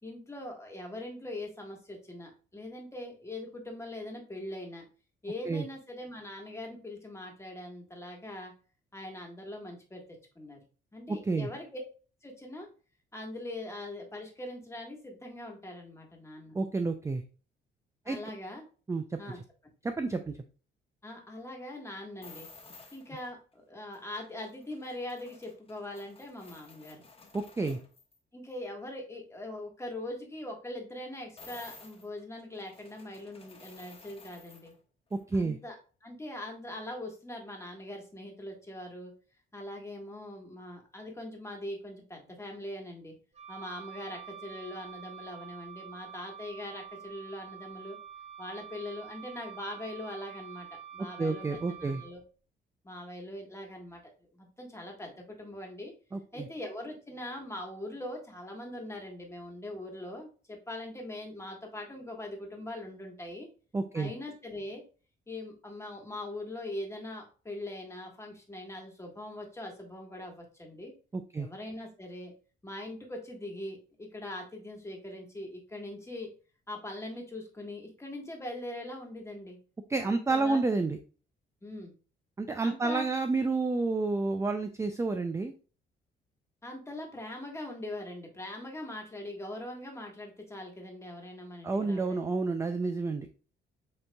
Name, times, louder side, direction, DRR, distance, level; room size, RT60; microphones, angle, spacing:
voice 1, 0.0-4.8 5.2-8.5 8.9-10.0 10.3-10.6 10.9-11.8 12.2-12.7 13.1-16.5 18.0-18.6 19.2-19.4 21.0-22.5 22.9-27.0 28.3-34.7 35.3-35.8 36.0-39.1 39.5-43.1 43.5-48.0 48.4-50.7 50.9-52.2 52.8-54.0 54.3-55.9 56.3-63.5 63.9-64.8 65.3-70.9 71.3-72.3 72.6-76.3 76.7-79.6 80.0-80.6 81.6-81.9 82.6-83.1 86.6-92.3, left 1 dB, 15° left, 1 dB, 1.4 m, -42 dB
voice 2, 11.1-11.5 16.5-17.2 18.1-18.2 18.9-19.2 19.8-20.4 27.3-27.8 35.1-35.6 51.2-52.0 56.1-56.5 63.7-64.1 71.1-71.5 79.9-81.0 82.4-85.5 91.6-93.3, right 3 dB, 15° right, 7 dB, 0.4 m, -30 dB
sound 1, 22.2-23.3 23.9-28.2 31.4-34.7 35.1-35.2, left 3 dB, 30° left, 1.0 m, -53 dB
Wind instrument woodwind instrument, 43.3-52.1, right 9 dB, 35° right, 1.4 m, -47 dB
7.9 x 2.8 x 2.2 m, 0.37 s
cardioid pair, 90°, 20 cm